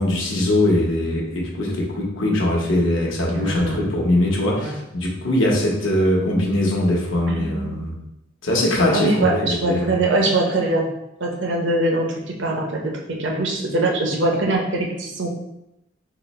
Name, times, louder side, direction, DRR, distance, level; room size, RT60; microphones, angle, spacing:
voice 1, 0.0-7.9 8.4-10.0, left 1 dB, 75° left, -2 dB, 0.9 m, -21 dB
voice 2, 3.3-3.8 4.6-4.7 7.3-8.0 8.9-10.9 11.2-15.3, right 2 dB, 65° right, 0 dB, 0.7 m, -23 dB
4.0 x 2.0 x 4.1 m, 0.86 s
head